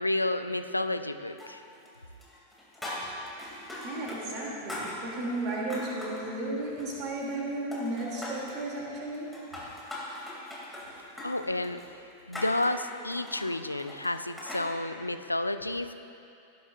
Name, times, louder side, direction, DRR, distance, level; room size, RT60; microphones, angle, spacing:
voice 1, 0.0-1.6 11.2-11.8 12.3-15.9, left 1 dB, 85° left, 10 dB, 0.4 m, -31 dB
sound 1, 1.4-2.0 2.2-4.2 4.4-6.2 6.7-7.4 7.7-8.6 9.1-14.7, left 1 dB, 5° left, 2.8 m, -40 dB
voice 2, 3.5-9.3, right 2 dB, 35° right, -4 dB, 2.9 m, -34 dB
17.0 x 10.5 x 2.6 m, 2.6 s
figure-of-eight pair, 90°, 0 cm